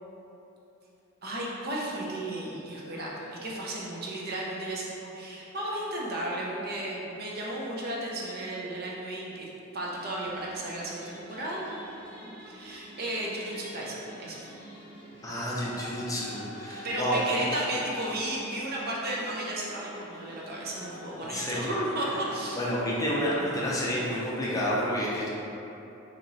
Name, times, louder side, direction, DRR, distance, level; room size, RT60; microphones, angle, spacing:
voice 1, 1.2-9.5 9.7-11.8 12.2-14.5 16.8-22.6, right 1 dB, 50° right, -4 dB, 0.6 m, -34 dB
sound 1, 9.8-24.1, equal, 65° right, 1.3 m, -46 dB
voice 2, 15.2-17.5 21.3-21.6 22.1-22.2 22.6-25.3, equal, 15° left, -6 dB, 0.5 m, -29 dB
2.9 x 2.8 x 3.9 m, 2.9 s
head